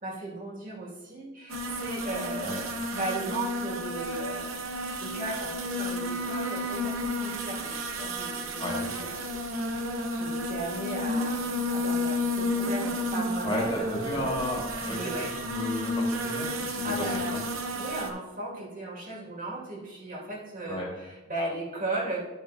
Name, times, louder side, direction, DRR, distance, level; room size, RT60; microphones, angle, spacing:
voice 1, 0.0-4.5 5.0-9.2 9.6-9.7 10.1-14.3 14.9-15.4 16.8-17.4 17.8-22.3, right 2 dB, 40° right, -4 dB, 2.3 m, -36 dB
sound 1, 1.5-18.1, left 1 dB, 70° right, 0.9 m, -32 dB
voice 2, 13.4-17.4 20.7-20.9, left 1 dB, 25° left, -2 dB, 1.9 m, -33 dB
12.5 x 5.6 x 2.8 m, 1.1 s
head